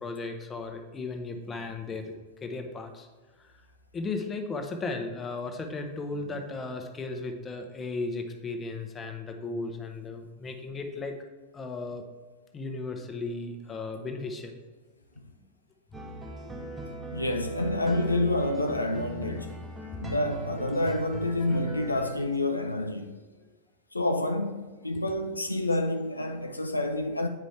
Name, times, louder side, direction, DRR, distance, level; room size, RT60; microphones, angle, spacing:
voice 1, 0.0-2.1 2.4-3.1 3.4-3.6 3.9-11.2 11.5-12.0 12.5-14.6 19.9-20.1 21.5-21.6 24.7-25.0, left 3 dB, 20° left, 0.8 m, -36 dB
sound 1, 15.9-22.2, right 1 dB, 15° right, 1.0 m, -39 dB
voice 2, 17.1-19.6 20.0-23.1 23.9-27.3, left 1 dB, 85° left, 0.4 m, -28 dB
8.4 x 5.1 x 3.3 m
figure-of-eight pair, 90°, 0 cm